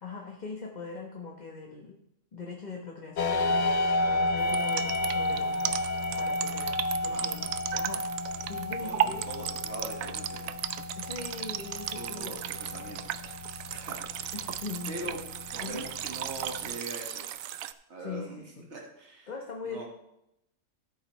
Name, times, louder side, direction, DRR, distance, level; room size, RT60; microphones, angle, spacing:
voice 1, 0.0-2.0 2.3-3.8 4.1-5.8 6.2-6.8 7.0-8.0 8.5-9.3 11.0-12.3 14.3-15.2 15.6-15.9 18.0-18.7 19.3-19.8, left 4 dB, 35° left, 0 dB, 1.2 m, -41 dB
sound 1, 3.2-16.8, left 2 dB, 55° left, 0.5 m, -32 dB
sound 2, 4.4-17.7, right 11 dB, 85° right, 1.0 m, -35 dB
voice 2, 8.8-10.5 10.8-10.9 11.9-13.2 13.5-15.2 15.5-17.3 17.9-18.4 18.7-19.3 19.6-19.8, right 2 dB, 55° right, -1 dB, 2.1 m, -42 dB
13.5 x 8.3 x 3.2 m, 0.83 s
omnidirectional pair, 1.4 m